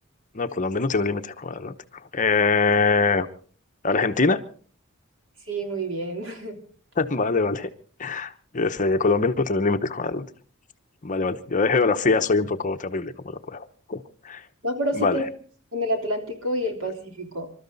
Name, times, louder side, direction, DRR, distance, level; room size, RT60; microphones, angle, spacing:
voice 1, 0.3-1.7 2.1-3.3 3.8-4.4 7.0-7.7 8.0-10.3 11.0-14.4 15.0-15.2, left 4 dB, 40° left, 9 dB, 0.9 m, -23 dB
voice 2, 5.5-6.6 14.6-15.2 15.7-17.5, equal, 65° right, 4 dB, 3.3 m, -28 dB
26.0 x 13.0 x 4.0 m, 0.43 s
head